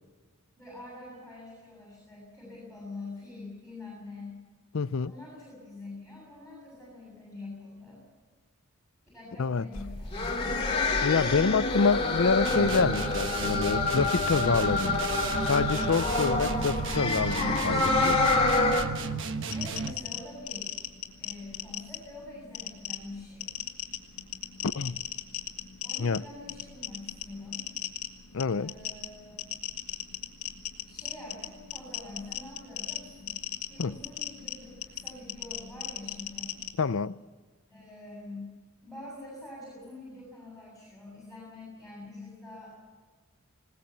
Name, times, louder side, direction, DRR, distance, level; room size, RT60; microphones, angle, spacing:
voice 1, 0.6-4.4 5.0-8.0 9.1-10.3 19.5-20.7 21.2-23.5 25.8-27.7 28.5-29.4 30.8-33.4 33.7-36.6 37.7-38.5 38.8-42.7, left 2 dB, ahead, 7.7 m, -45 dB
voice 2, 4.7-5.1 9.4-9.7 11.0-15.0 15.4-18.2 24.6-25.0 26.0-26.2 28.3-28.7 33.8-33.9 36.8-37.2, left 4 dB, 65° left, 0.5 m, -27 dB
sound 1, 9.8-18.8, left 3 dB, 25° left, 2.6 m, -27 dB
sound 2, 12.5-20.1, right 4 dB, 55° right, 1.2 m, -34 dB
sound 3, 19.5-36.7, left 10 dB, 85° left, 2.2 m, -38 dB
20.5 x 19.0 x 7.3 m
head